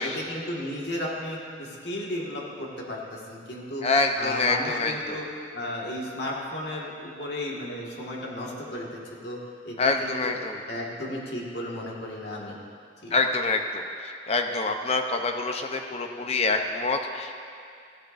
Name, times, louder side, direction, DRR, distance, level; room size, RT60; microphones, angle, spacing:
voice 1, 0.0-3.9 4.2-5.3 5.5-9.4 9.6-10.3 10.7-12.6 13.0-13.2, left 1 dB, 65° left, -3 dB, 1.9 m, -34 dB
voice 2, 3.8-5.2 9.8-10.6 13.1-17.3, left 3 dB, 35° left, 4 dB, 0.7 m, -26 dB
15.0 x 13.5 x 2.6 m, 2.3 s
head